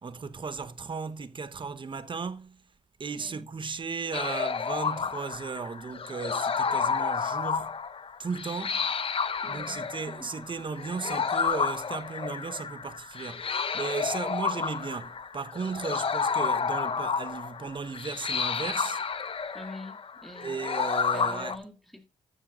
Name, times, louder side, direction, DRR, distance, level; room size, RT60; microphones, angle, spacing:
voice 1, 0.0-2.6 3.0-7.8 8.2-8.9 9.5-13.4 13.7-19.0 20.4-21.5, right 5 dB, 40° right, 1.1 m, -35 dB
voice 2, 3.2-3.5 9.4-9.9 10.2-10.5 19.5-20.7 21.1-22.1, left 1 dB, ahead, 2.5 m, -45 dB
sound 1, 4.1-21.5, left 6 dB, 45° left, 1.0 m, -31 dB
12.5 x 7.2 x 3.9 m
supercardioid pair, 60°, 13 cm